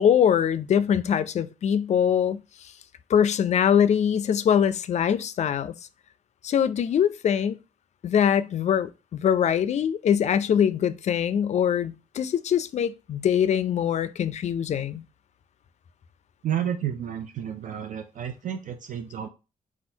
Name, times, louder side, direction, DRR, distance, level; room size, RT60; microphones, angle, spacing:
voice 1, 0.0-2.7 3.1-5.7 6.4-7.6 8.0-15.0, left 8 dB, 50° left, 0.4 m, -23 dB
voice 2, 16.4-19.3, right 9 dB, 60° right, 0.5 m, -31 dB
4.4 x 2.4 x 4.3 m
cardioid pair, 130°, 15 cm